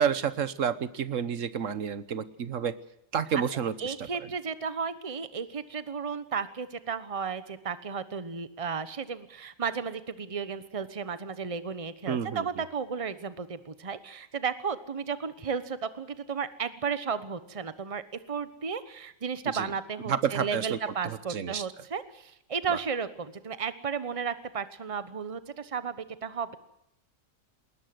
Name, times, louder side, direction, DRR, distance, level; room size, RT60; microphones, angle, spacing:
voice 1, 0.0-2.8 3.1-4.1 12.1-12.5 19.5-19.7 20.1-20.8 21.0-21.7 22.7-22.8, right 7 dB, 70° right, 15 dB, 1.4 m, -30 dB
voice 2, 3.8-18.0 18.3-26.5, right 6 dB, 25° right, 13 dB, 1.1 m, -34 dB
20.0 x 19.5 x 7.8 m, 0.78 s
omnidirectional pair, 1.4 m